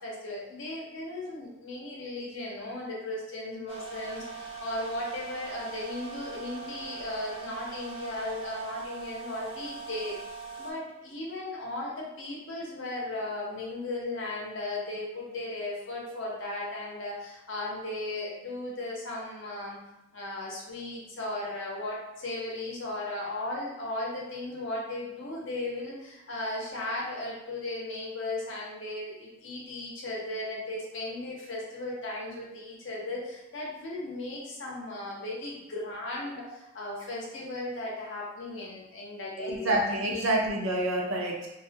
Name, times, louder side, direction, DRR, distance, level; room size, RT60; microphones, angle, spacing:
voice 1, 0.0-10.2 10.6-19.8 20.1-39.8 40.1-40.4, left 2 dB, 65° left, -3 dB, 0.6 m, -36 dB
sound 1, 3.7-10.7, right 5 dB, 30° right, 0.3 m, -41 dB
voice 2, 39.4-41.5, right 1 dB, 90° right, -1 dB, 0.6 m, -28 dB
2.3 x 2.1 x 2.7 m, 0.93 s
head